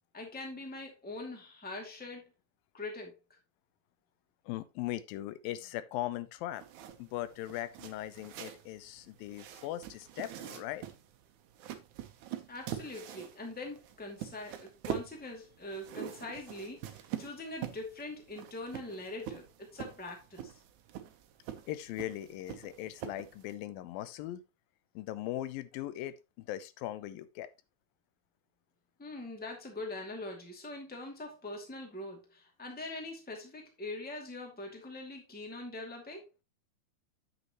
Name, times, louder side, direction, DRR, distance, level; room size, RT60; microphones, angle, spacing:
voice 1, 0.1-2.3 2.7-3.1 12.5-20.5 29.0-36.3, left 2 dB, 5° left, 1.6 m, -43 dB
voice 2, 4.5-6.6 7.0-10.9 21.7-24.4 25.0-27.5, left 14 dB, 85° left, 2.5 m, -39 dB
sound 1, 6.5-23.5, right 10 dB, 70° right, 2.1 m, -44 dB
9.3 x 7.9 x 3.0 m
omnidirectional pair, 4.1 m